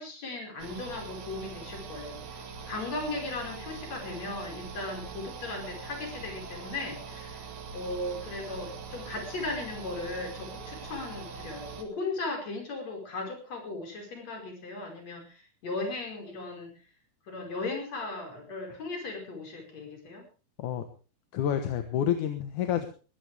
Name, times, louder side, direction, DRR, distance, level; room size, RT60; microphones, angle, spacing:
voice 1, 0.0-16.8 17.3-20.2, left 2 dB, 45° left, 2 dB, 6.2 m, -37 dB
sound 1, 0.6-11.8, right 5 dB, 85° right, 4.3 m, -42 dB
voice 2, 21.3-22.9, left 10 dB, 65° left, 7 dB, 2.5 m, -28 dB
21.0 x 15.0 x 3.5 m, 0.36 s
omnidirectional pair, 4.3 m